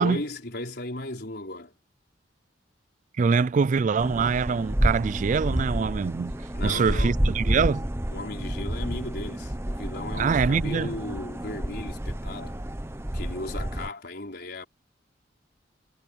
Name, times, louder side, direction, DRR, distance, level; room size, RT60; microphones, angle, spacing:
voice 1, 0.0-1.7 6.5-7.2 8.1-12.6 13.1-14.7, left 2 dB, 60° left, 4.4 m, -36 dB
voice 2, 3.2-6.3 6.6-7.9 10.1-11.0, right 5 dB, 45° right, 0.3 m, -24 dB
sound 1, 4.0-13.9, right 1 dB, 15° right, 0.9 m, -29 dB
head